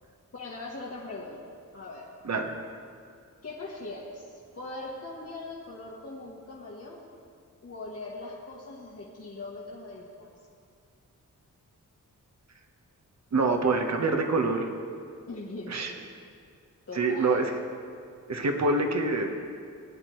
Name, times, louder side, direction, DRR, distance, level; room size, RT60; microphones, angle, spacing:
voice 1, 0.3-1.4 1.7-2.1 3.4-7.1 7.6-10.3 15.3-16.0 16.9-17.4, left 2 dB, 45° left, -5 dB, 1.4 m, -40 dB
voice 2, 13.3-14.7 15.7-15.9 17.0-17.5 18.3-19.3, right 3 dB, 50° right, 3 dB, 1.1 m, -25 dB
17.0 x 9.7 x 3.2 m, 2.3 s
wide cardioid pair, 100°, 34 cm